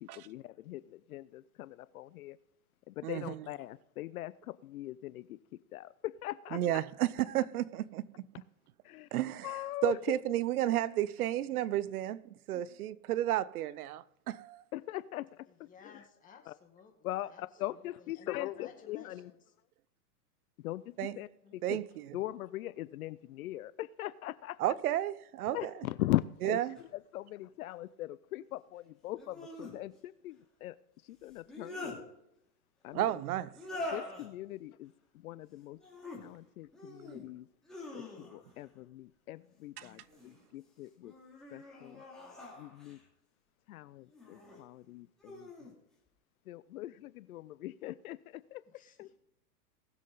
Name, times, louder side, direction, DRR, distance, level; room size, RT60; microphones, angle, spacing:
voice 1, 0.0-2.4 2.9-5.4 5.7-6.8 8.8-9.1 9.4-10.0 12.5-12.6 14.7-16.0 16.5-16.6 17.0-19.3 20.6-21.8 22.1-24.6 25.5-26.6 27.1-30.8 31.1-32.0 32.8-33.1 33.9-35.8 36.1-37.5 37.9-41.1 41.5-42.0 42.6-43.0 43.7-45.5 46.5-48.6 49.0-49.1, left 15 dB, 65° left, 0.6 m, -40 dB
voice 2, 3.0-3.5 6.5-8.1 9.1-14.6 21.0-21.2 21.6-22.2 24.6-25.7 26.4-26.8 32.9-33.5 39.8-39.9, right 13 dB, 70° right, 0.7 m, -32 dB
voice 3, 15.5-17.5 17.7-19.4 21.4-21.6 48.7-49.2, left 6 dB, 15° left, 1.9 m, -57 dB
sound 1, 26.7-26.8 29.1-29.7 31.3-32.0 33.5-34.3 35.7-36.2 36.7-37.2 37.6-38.5 39.8-40.4 41.0-43.0 44.1-44.6 45.2-45.7, left 2 dB, ahead, 2.9 m, -44 dB
19.0 x 7.6 x 4.0 m
supercardioid pair, 150°, 46 cm